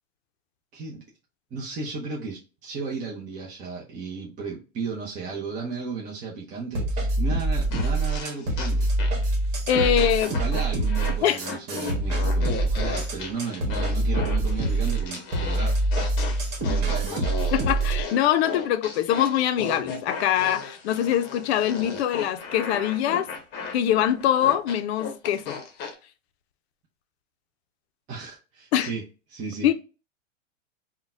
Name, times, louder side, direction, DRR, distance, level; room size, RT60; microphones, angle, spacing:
voice 1, 0.7-1.0 1.5-8.8 10.3-15.8 16.7-17.3 28.1-29.0 29.3-29.7, right 4 dB, 20° right, 0.6 m, -34 dB
sound 1, 6.7-18.0, right 2 dB, 40° right, 1.4 m, -25 dB
sound 2, 7.7-9.3 9.7-25.9, left 5 dB, 30° left, 0.8 m, -36 dB
voice 2, 9.7-10.4 11.2-11.4 17.5-23.3 23.7-25.6 28.7-28.9 29.6-29.7, left 10 dB, 55° left, 0.5 m, -23 dB
3.8 x 2.2 x 2.5 m
hypercardioid pair, 125°, 38 cm